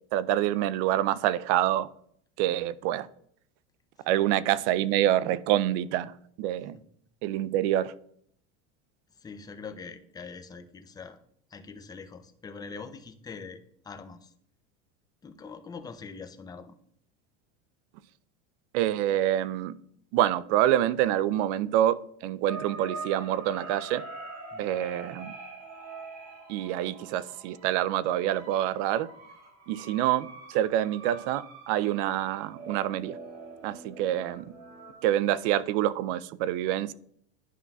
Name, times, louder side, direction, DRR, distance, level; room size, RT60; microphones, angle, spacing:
voice 1, 0.1-1.9 2.4-3.1 4.1-6.8 7.2-7.9 18.7-19.7 20.1-24.0 24.6-25.3 26.5-29.1 29.7-33.2 33.6-34.5 35.0-36.9, right 12 dB, 65° right, 0.5 m, -26 dB
voice 2, 9.2-11.2 11.5-14.3 15.2-16.7 24.5-24.7, left 5 dB, 10° left, 0.4 m, -43 dB
sound 1, 22.5-34.9, right 3 dB, 45° right, 1.9 m, -44 dB
11.0 x 5.4 x 2.3 m
supercardioid pair, 125°, 37 cm